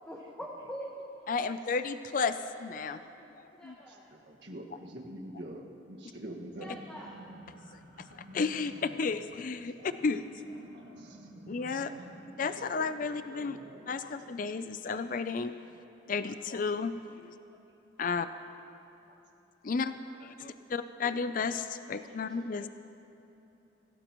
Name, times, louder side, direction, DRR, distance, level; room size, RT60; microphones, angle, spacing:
voice 1, 0.0-1.1 3.6-4.1 6.6-7.2 13.8-13.9 21.9-22.1, equal, 10° left, -4 dB, 1.3 m, -43 dB
voice 2, 1.3-3.0 3.3-3.7 8.0-10.2 11.5-11.9 12.4-13.6 13.9-15.6 16.1-17.3 18.0-18.3 19.6-19.9 20.2-22.7, left 4 dB, 45° left, 11 dB, 0.4 m, -33 dB
voice 3, 2.8-3.1 3.9-6.8 8.2-8.3 9.7-9.9 10.7-11.3 11.6-12.0 12.4-12.8 13.4-13.8 17.4-17.8 18.7-18.8 19.1-19.2 19.8-19.9, right 1 dB, 65° right, -1 dB, 1.8 m, -47 dB
sound 1, 6.4-14.3, equal, 85° right, 3.8 m, -52 dB
25.0 x 16.5 x 3.0 m, 2.9 s
head